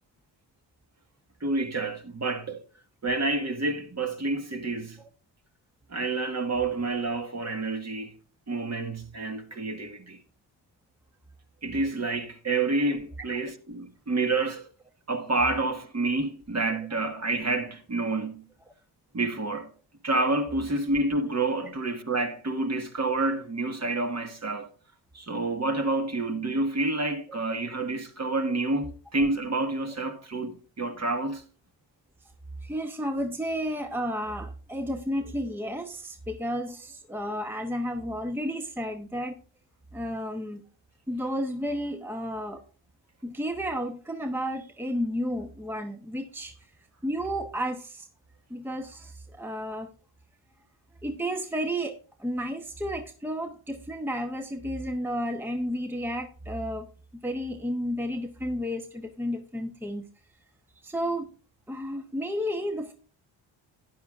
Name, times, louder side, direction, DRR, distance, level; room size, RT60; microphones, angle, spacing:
voice 1, 1.4-2.6 3.0-5.0 5.9-8.1 8.5-10.2 11.6-14.7 15.1-18.5 19.1-19.7 20.0-24.7 25.1-31.4, right 2 dB, 30° right, 1.7 m, -28 dB
voice 2, 32.6-39.4 39.9-40.6 41.1-42.6 43.2-46.5 47.0-48.1 48.5-49.9 51.0-56.9 57.2-60.1 60.8-61.3 61.7-62.9, equal, 5° right, 1.0 m, -32 dB
12.5 x 9.7 x 2.5 m
supercardioid pair, 50°, 49 cm